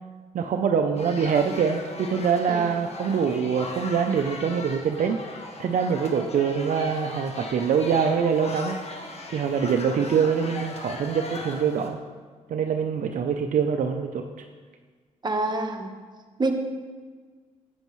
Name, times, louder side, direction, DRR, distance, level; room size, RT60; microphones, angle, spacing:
voice 1, 0.3-5.2 5.6-8.8 9.3-12.0 12.5-14.5, right 6 dB, 65° right, 5 dB, 0.5 m, -24 dB
sound 1, 1.0-11.9, left 3 dB, 50° left, 1.2 m, -38 dB
voice 2, 15.2-15.9 16.4-16.5, right 2 dB, 30° right, 3 dB, 1.1 m, -26 dB
8.9 x 8.4 x 3.1 m, 1.5 s
cardioid pair, 65°, 14 cm